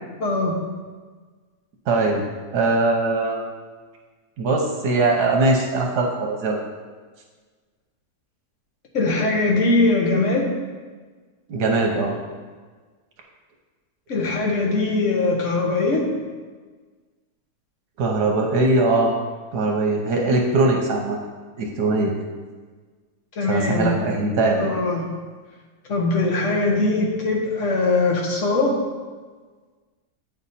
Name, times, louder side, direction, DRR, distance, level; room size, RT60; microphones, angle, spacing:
voice 1, 0.2-0.6 8.9-10.5 14.1-16.1 23.4-24.1 24.6-25.1 25.9-28.8, left 3 dB, 50° left, -1 dB, 1.3 m, -21 dB
voice 2, 1.9-2.2 2.5-3.4 4.4-6.6 11.5-12.1 18.0-19.1 19.5-21.2 21.6-22.1 23.5-24.7, right 2 dB, 80° right, 0 dB, 1.3 m, -21 dB
8.8 x 3.3 x 4.1 m, 1.4 s
omnidirectional pair, 1.7 m